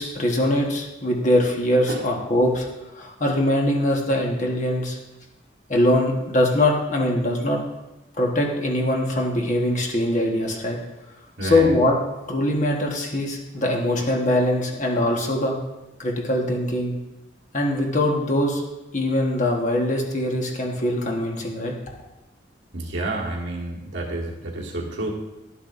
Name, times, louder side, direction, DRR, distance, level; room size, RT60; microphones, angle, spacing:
voice 1, 0.0-2.7 2.9-5.0 5.7-7.6 8.2-10.8 11.4-12.0 12.3-15.6 16.0-17.0 17.5-18.6 18.9-21.7, left 1 dB, 40° left, 0 dB, 1.3 m, -22 dB
voice 2, 11.4-11.7 22.7-25.1, right 2 dB, 80° right, -2 dB, 1.5 m, -29 dB
11.5 x 7.3 x 2.6 m, 1.0 s
head